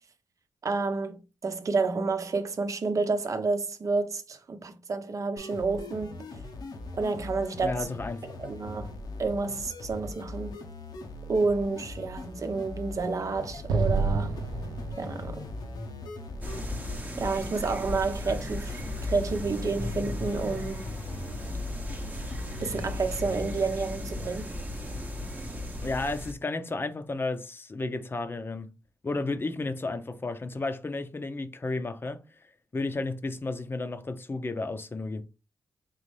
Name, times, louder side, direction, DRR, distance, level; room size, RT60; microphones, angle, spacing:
voice 1, 0.6-6.2 7.0-7.9 8.2-10.6 11.3-14.4 15.0-15.5 17.2-20.8 22.6-24.5, right 4 dB, 50° right, 0.8 m, -30 dB
sound 1, 5.4-23.4, left 2 dB, 80° left, 0.9 m, -41 dB
voice 2, 7.6-8.4 25.8-28.7 29.0-32.2 32.7-35.2, left 3 dB, 30° left, 0.7 m, -32 dB
Explosion, 13.7-17.0, right 4 dB, 80° right, 0.6 m, -30 dB
sound 2, 16.4-26.3, left 1 dB, 25° right, 0.9 m, -36 dB
4.0 x 3.1 x 3.2 m
cardioid pair, 65°, 7 cm